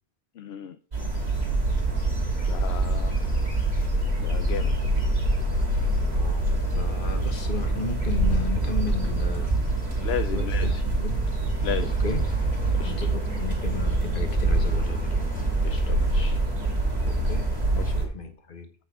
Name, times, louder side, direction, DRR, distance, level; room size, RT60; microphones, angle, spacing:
voice 1, 0.4-0.8 2.5-3.2 4.2-4.8 7.3-7.4 10.0-10.8 11.6-11.9 12.8-12.9 15.6-16.4, left 9 dB, 75° left, 10 dB, 0.8 m, -34 dB
sound 1, 0.9-18.1, right 2 dB, 85° right, 3.2 m, -25 dB
sound 2, 1.0-17.9, left 1 dB, 10° left, 1.0 m, -41 dB
voice 2, 6.8-9.5 10.3-11.2 11.8-12.2 12.8-15.2 17.1-17.5 17.7-18.7, left 4 dB, 55° left, 6 dB, 1.5 m, -34 dB
8.2 x 6.0 x 4.8 m, 0.41 s
omnidirectional pair, 1.1 m